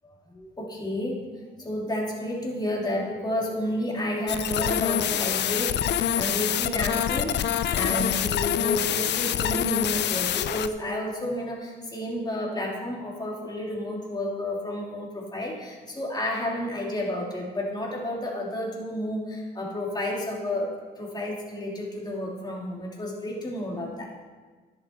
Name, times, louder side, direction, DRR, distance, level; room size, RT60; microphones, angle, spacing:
voice 1, 0.0-1.2 1.6-24.1, left 1 dB, 20° left, -2 dB, 2.7 m, -31 dB
sound 1, 4.3-10.7, left 10 dB, 60° left, 0.5 m, -26 dB
10.5 x 7.5 x 4.4 m, 1.4 s
cardioid pair, 90°, 20 cm